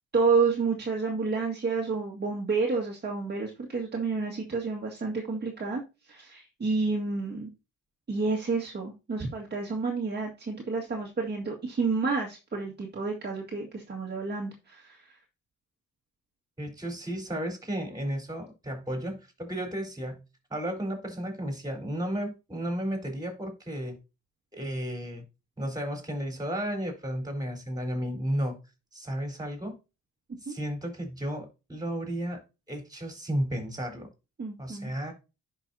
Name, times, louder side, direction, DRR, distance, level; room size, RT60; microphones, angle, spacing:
voice 1, 0.1-7.5 8.1-15.2 30.5-30.6 34.4-34.9, right 4 dB, 35° right, 2.0 m, -30 dB
voice 2, 16.6-20.2 20.5-24.0 24.5-25.2 25.6-28.6 28.9-29.8 30.4-32.4 32.7-34.1 34.6-35.1, equal, 15° right, 4.2 m, -33 dB
10.5 x 5.7 x 2.8 m
cardioid pair, 90°, 30 cm